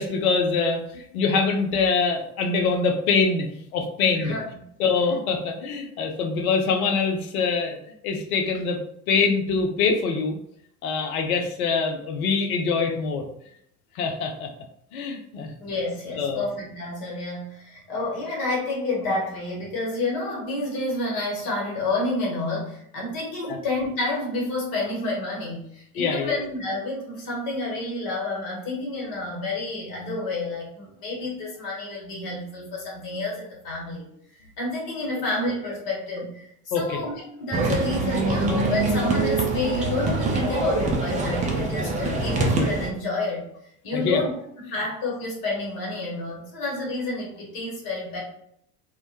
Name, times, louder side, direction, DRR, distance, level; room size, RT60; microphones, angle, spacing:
voice 1, 0.0-4.3 4.8-7.8 8.0-8.8 9.1-10.4 10.8-13.2 13.9-14.5 14.9-15.5 16.2-16.5 23.4-23.6 26.0-26.4 36.7-37.0 43.9-44.2, left 4 dB, 70° left, 3 dB, 0.6 m, -24 dB
voice 2, 4.1-4.6 15.6-34.1 34.6-36.4 36.8-43.4 43.8-48.2, left 2 dB, 50° left, -4 dB, 1.1 m, -29 dB
sound 1, 37.5-42.9, right 3 dB, 20° right, 0.3 m, -24 dB
2.1 x 2.1 x 2.8 m, 0.71 s
figure-of-eight pair, 60°, 45 cm